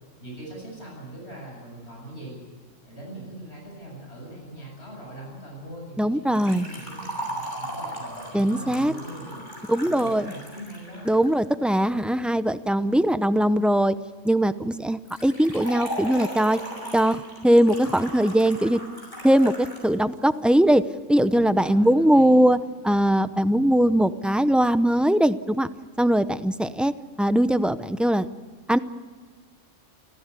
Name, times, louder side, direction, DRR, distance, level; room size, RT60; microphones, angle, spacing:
voice 1, 0.2-2.4 2.8-9.4 9.8-11.1 21.3-22.5, right 1 dB, 60° left, -2 dB, 7.8 m, -41 dB
voice 2, 6.0-6.7 8.3-8.9 9.7-10.3 11.1-13.9 14.2-16.6 16.9-18.8 19.2-20.8 21.1-22.6 22.8-25.7 26.0-26.9 27.2-28.3 28.7-28.8, right 1 dB, ahead, 11 dB, 0.5 m, -20 dB
Liquid, 6.3-11.3 15.1-19.9 20.2-20.3 21.2-21.3, equal, 40° left, 6.5 m, -37 dB
29.5 x 15.0 x 8.4 m, 1.5 s
omnidirectional pair, 1.3 m